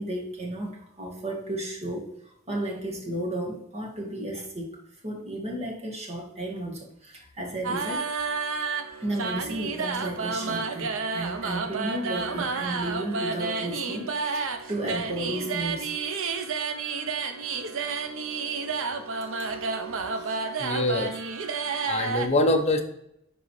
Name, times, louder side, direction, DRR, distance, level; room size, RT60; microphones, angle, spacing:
voice 1, 0.0-8.3 9.0-15.9, right 1 dB, 30° right, -1 dB, 1.8 m, -33 dB
sound 1, 7.6-22.3, right 4 dB, 65° right, 0.7 m, -30 dB
voice 2, 20.6-21.2 21.9-22.8, left 1 dB, 30° left, 3 dB, 0.9 m, -24 dB
11.0 x 3.9 x 3.2 m, 0.76 s
head